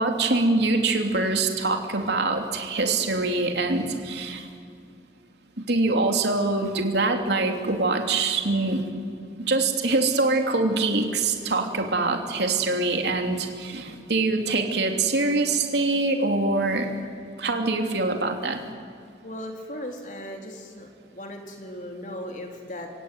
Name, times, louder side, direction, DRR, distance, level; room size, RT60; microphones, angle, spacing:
voice 1, 0.0-4.5 5.7-8.8 9.4-16.9 17.4-18.6, right 3 dB, 70° right, 3 dB, 3.1 m, -24 dB
voice 2, 19.2-22.9, left 1 dB, 45° left, 2 dB, 3.7 m, -37 dB
30.0 x 18.0 x 9.5 m, 2.4 s
head